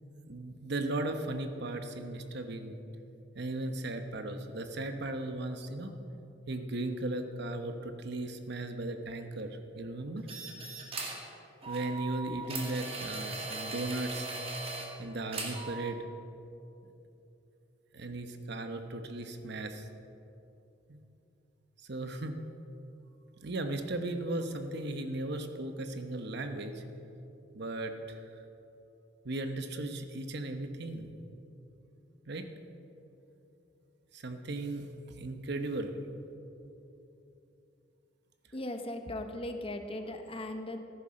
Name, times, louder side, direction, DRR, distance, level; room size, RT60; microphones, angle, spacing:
voice 1, 0.3-2.8 3.3-5.9 6.5-10.3 11.7-14.3 15.0-16.0 17.9-19.8 20.9-21.0 21.9-22.4 23.4-26.8 27.5-28.2 29.2-31.1 32.3-32.5 34.1-34.9 35.2-35.9, right 2 dB, 60° right, 7 dB, 1.0 m, -36 dB
sound 1, 10.3-11.2 11.6-14.9 15.3-15.9, right 3 dB, 30° right, 2.0 m, -39 dB
voice 2, 38.5-40.8, left 1 dB, 30° left, 6 dB, 1.0 m, -38 dB
14.0 x 10.0 x 6.4 m, 2.9 s
head